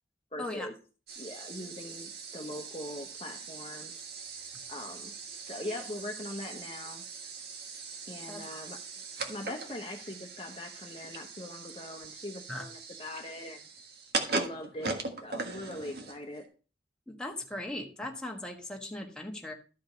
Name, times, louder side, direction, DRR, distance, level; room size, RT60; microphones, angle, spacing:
voice 1, 0.3-0.8 1.2-4.0 4.7-5.1 5.5-7.0 8.1-8.8 9.3-13.6 14.2-16.5, left 1 dB, 30° left, 3 dB, 1.1 m, -41 dB
sound 1, 1.1-16.4, right 4 dB, 60° right, 1.6 m, -40 dB
voice 2, 8.3-8.6 12.5-12.6 17.1-19.5, left 1 dB, 5° left, 0 dB, 1.4 m, -39 dB
13.0 x 5.1 x 5.2 m, 0.36 s
head